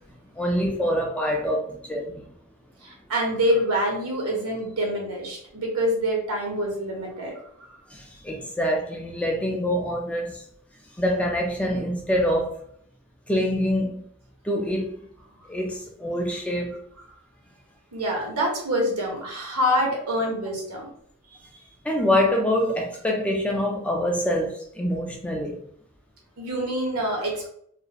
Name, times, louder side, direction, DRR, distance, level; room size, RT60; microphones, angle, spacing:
voice 1, 0.3-2.3 7.9-10.4 11.0-12.6 13.3-14.0 14.4-14.9 15.5-16.8 21.8-25.6, equal, 5° left, 0.3 m, -25 dB
voice 2, 2.8-7.8 17.9-20.9 21.5-21.6 26.4-27.5, equal, 80° right, 1.0 m, -26 dB
2.5 x 2.4 x 2.8 m
head